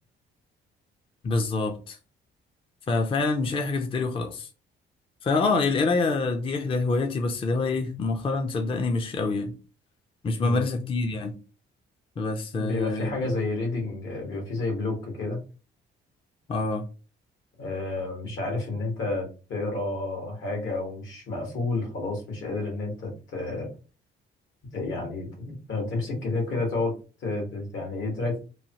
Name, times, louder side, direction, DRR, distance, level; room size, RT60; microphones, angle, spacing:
voice 1, 1.2-2.0 2.9-4.5 5.2-9.5 10.2-11.3 12.2-13.1 16.5-16.9, left 3 dB, 25° left, 0.4 m, -26 dB
voice 2, 12.5-15.4 17.6-23.7 24.7-26.9 27.2-28.4, left 2 dB, 75° left, 1.5 m, -30 dB
3.0 x 2.2 x 2.9 m
cardioid pair, 90°, 20 cm